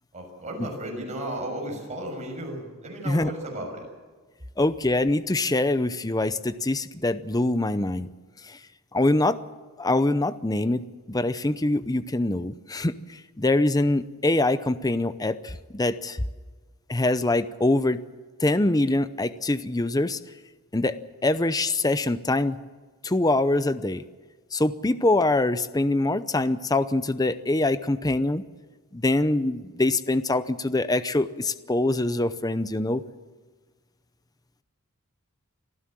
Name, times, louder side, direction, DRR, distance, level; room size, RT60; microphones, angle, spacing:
voice 1, 0.1-3.9, right 1 dB, 30° right, 1 dB, 6.5 m, -34 dB
voice 2, 4.6-8.1 8.5-8.6 8.9-9.4 9.8-12.9 13.4-16.2 16.9-18.0 18.4-20.2 20.7-22.6 23.0-24.0 24.5-28.4 28.9-33.1, left 2 dB, 15° left, 13 dB, 0.7 m, -24 dB
25.5 x 15.0 x 7.6 m, 1.4 s
head